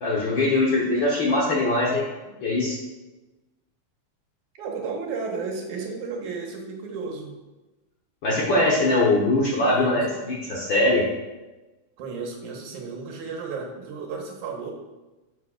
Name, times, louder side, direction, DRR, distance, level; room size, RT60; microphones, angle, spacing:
voice 1, 0.0-2.0 2.4-2.8 8.2-11.0, left 2 dB, 55° left, -3 dB, 1.4 m, -22 dB
voice 2, 4.6-7.4 9.7-10.1 12.0-14.7, right 4 dB, 85° right, 1 dB, 2.6 m, -33 dB
11.0 x 6.7 x 2.5 m, 1.1 s
omnidirectional pair, 3.4 m